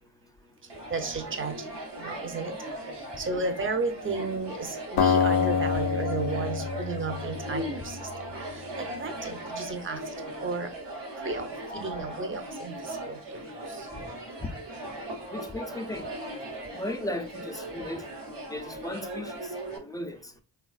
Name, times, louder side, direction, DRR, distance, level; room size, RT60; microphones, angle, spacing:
voice 1, 0.6-2.5 3.0-8.1 8.4-10.7 11.2-13.9, right 3 dB, 30° right, 0.6 m, -34 dB
sound 1, 0.7-19.8, right 1 dB, 80° right, 1.0 m, -39 dB
Acoustic guitar, 5.0-8.1, left 6 dB, 60° left, 0.5 m, -27 dB
voice 2, 15.3-16.1 16.7-18.0 18.5-20.3, left 1 dB, 10° left, 0.4 m, -36 dB
3.2 x 2.3 x 2.3 m
cardioid pair, 60°, 41 cm